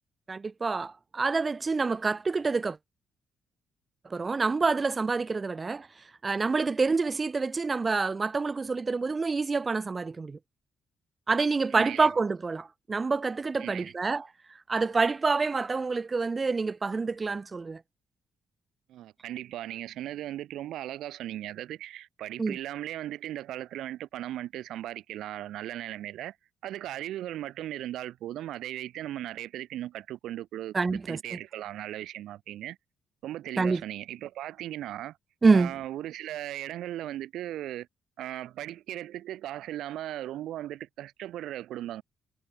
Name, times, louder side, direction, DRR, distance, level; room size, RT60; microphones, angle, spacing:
voice 1, 0.3-2.8 4.1-5.9 6.2-10.4 11.3-14.3 14.7-17.8 22.4-22.6 30.7-31.2 33.6-33.8 35.4-35.7, right 4 dB, 30° right, 0.5 m, -27 dB
voice 2, 11.7-12.1 13.6-13.9 18.9-26.4 26.6-32.8 33.2-35.2 35.5-37.9 38.2-42.0, right 13 dB, 80° right, 0.3 m, -37 dB
cardioid pair, 90°, 0 cm